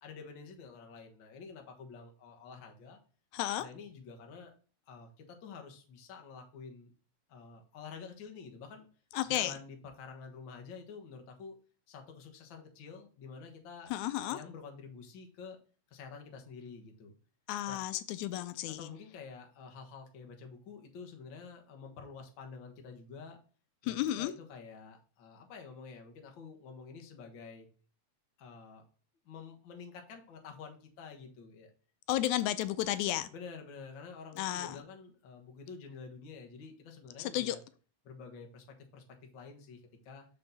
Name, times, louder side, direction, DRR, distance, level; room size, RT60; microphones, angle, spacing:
voice 1, 0.0-3.0 3.6-4.5 4.9-6.9 7.3-8.9 9.3-11.6 11.9-13.9 14.2-15.6 15.9-17.1 17.7-17.8 18.7-23.4 23.8-27.7 28.4-28.8 29.2-31.7 33.3-37.6 38.0-38.6 38.9-39.0 39.3-40.3, left 5 dB, 50° left, 3 dB, 1.7 m, -49 dB
voice 2, 3.3-3.7 9.1-9.5 13.9-14.4 17.5-18.9 23.8-24.3 32.1-33.3 34.4-34.8 37.2-37.6, left 13 dB, 90° left, 14 dB, 2.0 m, -33 dB
6.7 x 5.3 x 4.0 m, 0.40 s
omnidirectional pair, 3.3 m